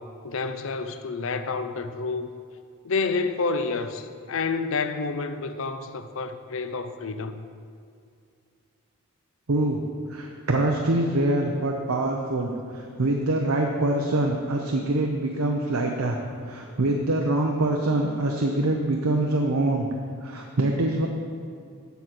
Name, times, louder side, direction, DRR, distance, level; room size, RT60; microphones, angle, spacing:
voice 1, 0.2-2.3 2.8-7.4, left 4 dB, 60° left, 10 dB, 0.6 m, -29 dB
voice 2, 9.5-9.8 10.1-16.2 16.5-19.9 20.2-21.1, right 2 dB, 75° right, 1 dB, 0.8 m, -24 dB
8.0 x 7.1 x 5.9 m, 2.3 s
head